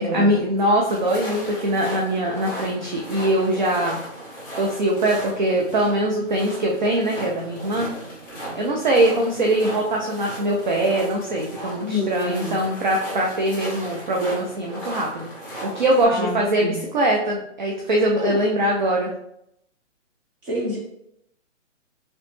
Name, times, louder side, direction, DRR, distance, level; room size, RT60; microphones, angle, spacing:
voice 1, 0.0-4.0 4.6-7.9 8.5-15.3 15.6-19.1, right 1 dB, 40° right, -1 dB, 0.4 m, -22 dB
sound 1, 0.9-16.0, right 1 dB, 5° left, 1.4 m, -36 dB
voice 2, 11.8-12.5 16.0-16.8 18.2-18.4 20.4-20.8, left 1 dB, 15° right, -6 dB, 0.8 m, -27 dB
3.0 x 3.0 x 3.1 m, 0.79 s
hypercardioid pair, 160°, 38 cm